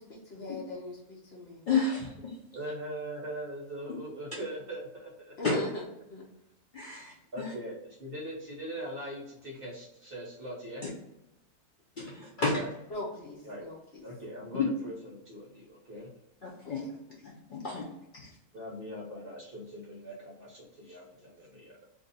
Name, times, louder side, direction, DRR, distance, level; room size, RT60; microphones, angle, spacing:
voice 1, 0.0-1.7 5.4-5.8 6.1-6.2 12.9-13.8 16.6-16.9 18.2-18.3, left 2 dB, 55° left, -2 dB, 0.8 m, -40 dB
voice 2, 1.7-2.3 5.4-5.6 6.7-7.5 12.0-12.6 14.5-14.6 16.4-16.8 17.2-17.9, left 4 dB, 85° left, -3 dB, 0.4 m, -31 dB
voice 3, 2.5-5.3 7.3-10.8 12.5-12.7 13.4-13.6 14.0-16.1 18.5-21.8, right 1 dB, 50° right, -3 dB, 0.8 m, -41 dB
2.6 x 2.6 x 3.9 m, 0.89 s
omnidirectional pair, 1.6 m